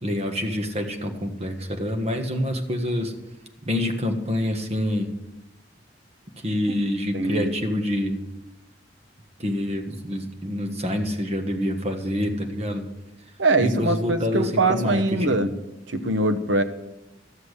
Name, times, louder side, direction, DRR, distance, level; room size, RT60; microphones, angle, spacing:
voice 1, 0.0-3.1 3.6-5.1 6.4-8.2 9.4-12.9 13.6-15.0 15.3-15.4, left 1 dB, 35° right, 5 dB, 1.5 m, -26 dB
voice 2, 7.1-7.5 13.4-15.5 15.9-16.6, right 2 dB, 75° right, 9 dB, 1.0 m, -22 dB
13.5 x 7.1 x 8.2 m, 0.99 s
head